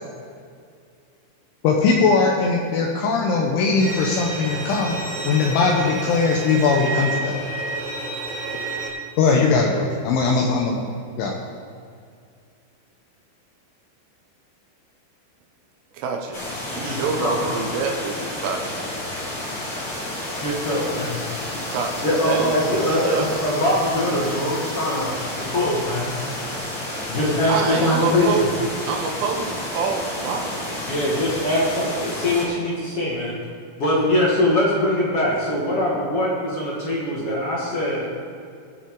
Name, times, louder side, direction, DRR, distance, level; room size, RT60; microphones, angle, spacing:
voice 1, 1.6-5.0 5.2-7.4 9.2-10.9 11.2-11.3, left 4 dB, 75° left, 0 dB, 3.1 m, -20 dB
Bowed string instrument, 3.8-8.9, right 2 dB, 60° right, 3.1 m, -30 dB
voice 2, 15.9-16.4 16.7-18.9 21.7-23.3 27.5-28.5 28.9-30.9, right 5 dB, 80° right, 2 dB, 3.6 m, -27 dB
sound 1, 16.3-32.5, left 1 dB, 35° left, 2.6 m, -31 dB
voice 3, 16.8-17.5 20.4-21.2 22.0-26.1 27.1-28.3 30.9-33.3 33.8-38.0, left 1 dB, 55° left, -5 dB, 1.6 m, -22 dB
22.0 x 8.0 x 3.8 m, 2.3 s
omnidirectional pair, 5.8 m